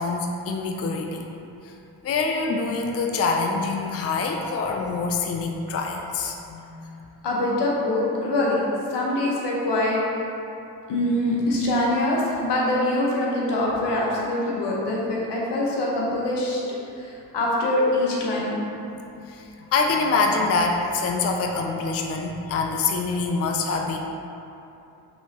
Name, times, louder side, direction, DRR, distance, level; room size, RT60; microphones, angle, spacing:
voice 1, 0.0-1.3 1.6-1.7 2.0-6.9 19.3-24.0, left 4 dB, 35° left, 2 dB, 0.4 m, -25 dB
voice 2, 7.2-10.0 10.9-16.6 17.0-18.6, left 1 dB, 80° left, -4 dB, 1.0 m, -24 dB
5.4 x 3.0 x 2.9 m, 2.8 s
cardioid pair, 55°, 41 cm